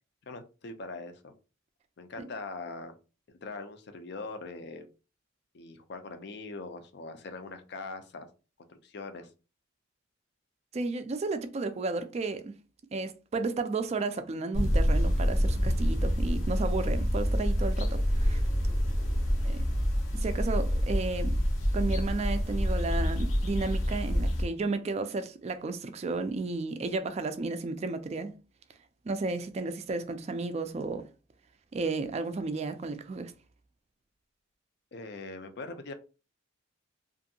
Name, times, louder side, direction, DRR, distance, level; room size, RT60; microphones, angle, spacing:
voice 1, 0.3-1.3 2.0-2.9 3.4-4.9 5.5-8.3 8.8-9.3 34.9-35.9, left 3 dB, 55° left, 0.5 m, -41 dB
voice 2, 10.7-12.5 12.9-18.4 19.4-19.6 20.1-21.4 21.7-28.3 29.1-31.1 31.7-33.3, right 3 dB, 35° right, 0.3 m, -33 dB
sound 1, 14.5-24.4, equal, 85° left, 0.8 m, -27 dB
2.7 x 2.5 x 2.6 m
head